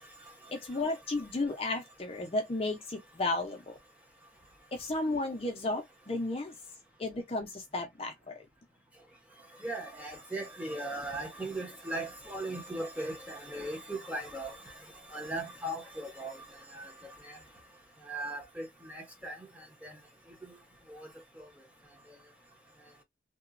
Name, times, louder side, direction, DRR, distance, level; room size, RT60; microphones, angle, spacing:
voice 1, 0.5-3.8 4.7-6.5 7.0-8.3, left 2 dB, 30° left, 0.5 m, -33 dB
voice 2, 9.6-14.7 15.1-16.4 16.7-17.4 18.1-19.4 19.8-20.0 20.9-21.1 21.4-21.5, right 1 dB, 10° right, 0.8 m, -38 dB
2.9 x 2.1 x 2.4 m
head